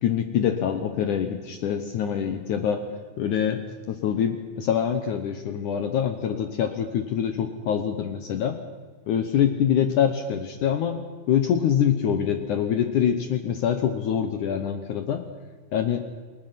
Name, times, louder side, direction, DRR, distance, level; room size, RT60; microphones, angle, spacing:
voice 1, 0.0-2.9 3.2-3.6 3.9-8.6 9.1-15.2 15.7-16.0, left 8 dB, 65° left, 7 dB, 2.2 m, -25 dB
29.0 x 21.5 x 5.9 m, 1.4 s
omnidirectional pair, 4.4 m